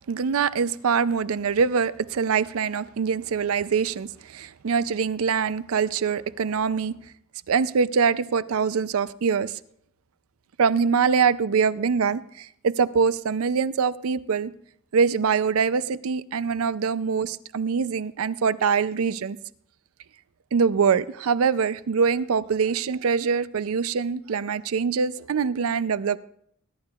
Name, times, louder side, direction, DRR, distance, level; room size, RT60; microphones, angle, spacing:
voice 1, 0.1-7.0 7.5-9.6 10.6-14.5 14.9-19.4 20.5-26.2, right 6 dB, 85° right, 0.5 m, -24 dB
21.0 x 11.5 x 2.4 m
head